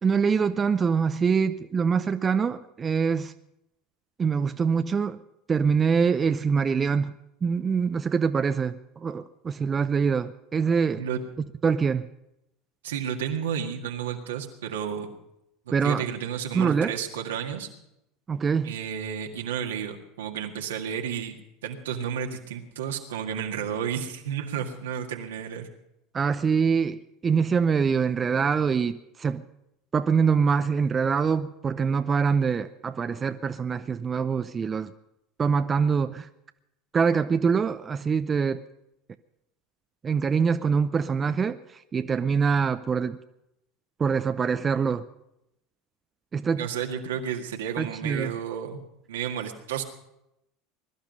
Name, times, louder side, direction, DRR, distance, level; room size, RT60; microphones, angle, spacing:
voice 1, 0.0-3.3 4.2-5.2 5.5-11.0 11.4-12.1 15.7-16.1 16.5-16.9 18.3-18.7 26.1-29.4 29.9-34.9 35.4-36.3 36.9-38.6 40.0-43.2 44.0-45.0 46.3-46.7 47.8-48.3, right 6 dB, 30° right, 10 dB, 0.6 m, -24 dB
voice 2, 12.8-15.1 15.8-17.7 18.6-25.7 46.6-48.8 49.1-49.8, right 8 dB, 80° right, 3 dB, 1.9 m, -32 dB
21.0 x 12.0 x 5.4 m, 0.84 s
hypercardioid pair, 80°, 0 cm